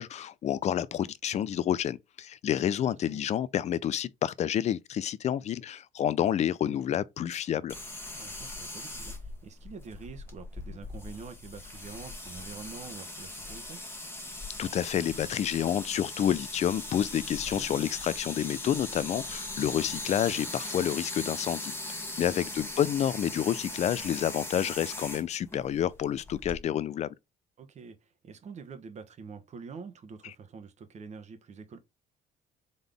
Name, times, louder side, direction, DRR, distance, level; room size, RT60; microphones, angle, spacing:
voice 1, 0.0-7.7 14.6-27.1, left 10 dB, 40° left, 0.4 m, -29 dB
voice 2, 2.8-3.2 6.6-6.8 8.1-13.8 17.5-17.7 19.9-20.0 22.2-22.3 27.6-31.8, right 5 dB, 45° right, 1.0 m, -46 dB
sound 1, 7.7-26.6, left 2 dB, 15° left, 1.4 m, -40 dB
3.9 x 3.5 x 3.4 m
cardioid pair, 110°, 17 cm